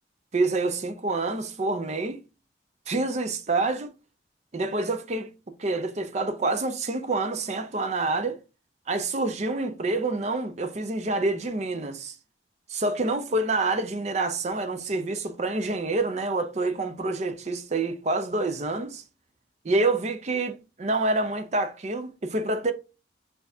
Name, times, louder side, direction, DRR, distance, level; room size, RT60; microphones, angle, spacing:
voice 1, 0.3-2.2 2.9-3.9 4.5-5.3 5.6-8.4 8.9-12.1 12.7-19.0 19.6-22.7, right 2 dB, 35° right, 0.5 m, -27 dB
4.4 x 2.7 x 3.4 m
head